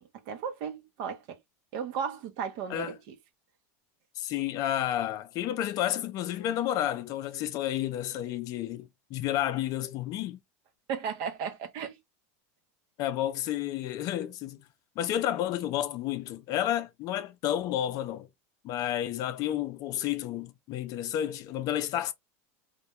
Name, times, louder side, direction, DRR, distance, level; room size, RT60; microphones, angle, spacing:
voice 1, 0.3-1.4 1.7-3.2 10.9-12.0, right 7 dB, 55° right, 0.6 m, -35 dB
voice 2, 4.2-10.4 13.0-14.6 15.0-18.3 18.6-22.1, left 12 dB, 50° left, 0.4 m, -31 dB
2.2 x 2.2 x 2.8 m
supercardioid pair, 120°, 8 cm